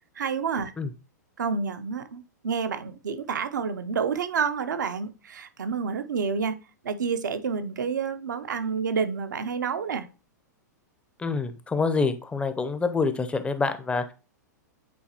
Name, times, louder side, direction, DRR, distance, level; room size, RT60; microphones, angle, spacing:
voice 1, 0.2-0.7 1.4-6.6 6.8-10.1, right 6 dB, 75° right, 0.7 m, -29 dB
voice 2, 11.2-14.1, left 4 dB, 10° left, 0.6 m, -26 dB
8.5 x 4.0 x 2.9 m
hypercardioid pair, 110°, 10 cm